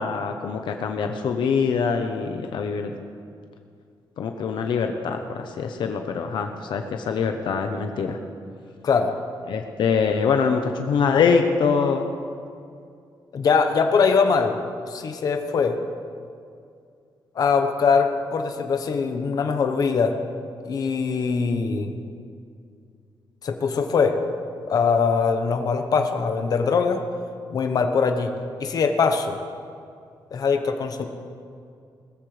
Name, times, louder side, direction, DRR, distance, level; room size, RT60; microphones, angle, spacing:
voice 1, 0.0-2.9 4.2-8.2 9.5-12.1, left 5 dB, 75° left, 5 dB, 0.8 m, -24 dB
voice 2, 13.3-14.6 14.9-15.8 17.3-20.1 20.7-21.9 23.4-24.2 24.7-27.0 27.5-28.3 28.6-29.4 30.3-31.0, left 5 dB, 50° left, 5 dB, 1.0 m, -22 dB
20.0 x 14.0 x 3.3 m, 2.4 s
wide cardioid pair, 170°, 8 cm